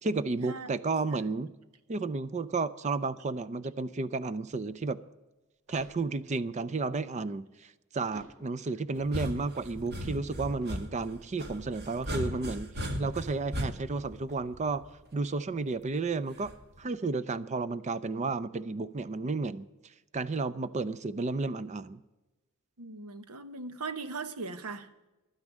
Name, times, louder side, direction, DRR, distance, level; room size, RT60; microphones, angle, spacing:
voice 1, 0.0-1.5 1.9-5.0 5.7-12.7 13.0-14.8 15.1-16.5 16.8-19.7 20.1-22.0, right 3 dB, 30° right, 15 dB, 0.4 m, -32 dB
sound 1, 5.2-6.5 8.1-9.0 11.4-12.3, right 1 dB, 65° right, 2.8 m, -53 dB
sound 2, 9.0-15.0 16.4-16.8, equal, 50° right, 1.7 m, -37 dB
voice 2, 22.8-25.1, right 4 dB, 85° right, 12 dB, 1.1 m, -39 dB
12.0 x 9.8 x 7.3 m, 1.1 s
head